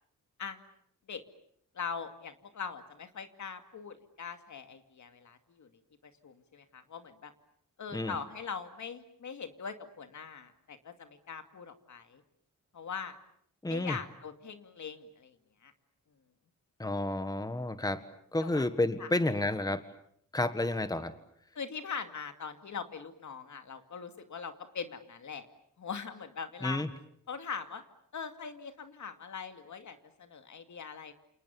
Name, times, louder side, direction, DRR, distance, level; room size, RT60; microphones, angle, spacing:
voice 1, 1.7-5.7 6.2-7.3 7.8-12.2 12.7-13.2 13.7-15.3 15.6-15.7 18.4-18.7 19.0-19.1 21.5-25.5 25.8-26.8 27.3-27.8 28.1-31.1, left 6 dB, 65° left, 8 dB, 2.4 m, -41 dB
voice 2, 13.6-14.0 16.8-18.0 18.3-19.8 20.3-21.1 26.6-26.9, left 2 dB, 10° left, 11 dB, 1.5 m, -30 dB
29.5 x 28.5 x 7.1 m, 0.68 s
wide cardioid pair, 125°, 31 cm